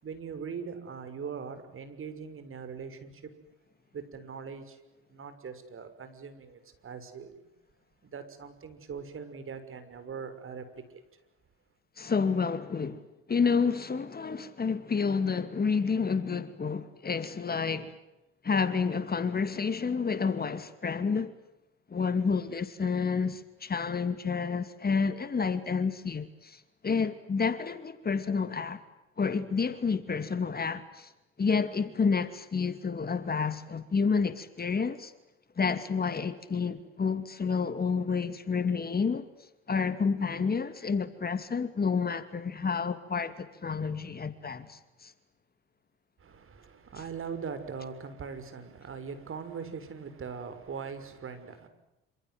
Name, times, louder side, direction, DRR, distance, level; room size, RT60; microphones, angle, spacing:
voice 1, 0.0-3.3 3.9-4.8 5.1-7.4 8.0-11.0 46.2-51.7, right 6 dB, 40° right, 6.3 m, -41 dB
voice 2, 12.0-13.0 13.3-17.9 18.4-21.3 21.9-28.8 29.2-31.1 31.4-35.1 35.6-39.2 39.7-45.1, left 5 dB, 30° left, 2.6 m, -29 dB
27.5 x 26.5 x 8.0 m
hypercardioid pair, 75°, 32 cm